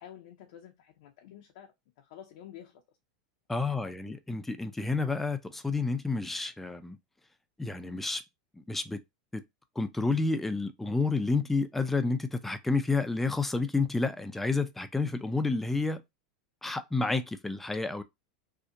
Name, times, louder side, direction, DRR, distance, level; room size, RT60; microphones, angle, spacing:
voice 1, 0.0-2.8 3.7-4.1, left 10 dB, 65° left, 0.5 m, -50 dB
voice 2, 3.5-7.0 7.6-8.2 8.7-9.0 9.3-9.4 9.8-16.0 16.6-18.0, left 3 dB, 5° left, 0.4 m, -30 dB
2.7 x 2.1 x 2.5 m
hypercardioid pair, 115°, 4 cm